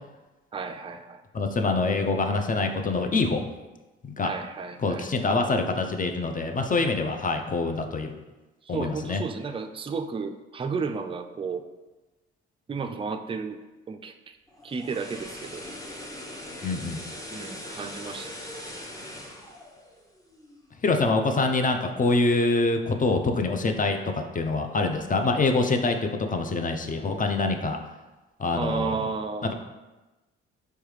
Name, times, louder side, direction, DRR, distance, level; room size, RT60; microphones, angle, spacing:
voice 1, 0.5-1.2 4.2-5.1 8.7-11.6 12.7-13.6 13.9-14.4 14.6-15.6 17.3-18.5 28.5-29.5, right 5 dB, 20° right, 7 dB, 0.4 m, -33 dB
voice 2, 1.3-3.4 4.0-4.3 4.8-8.1 8.7-9.2 16.6-17.0 20.8-24.0 24.3-27.8 28.4-28.9 29.4-29.5, left 3 dB, 30° left, 5 dB, 0.6 m, -25 dB
sound 1, 14.5-20.7 21.0-21.2, left 1 dB, 10° left, 1.0 m, -41 dB
4.6 x 3.2 x 3.3 m, 1.1 s
hypercardioid pair, 50°, 29 cm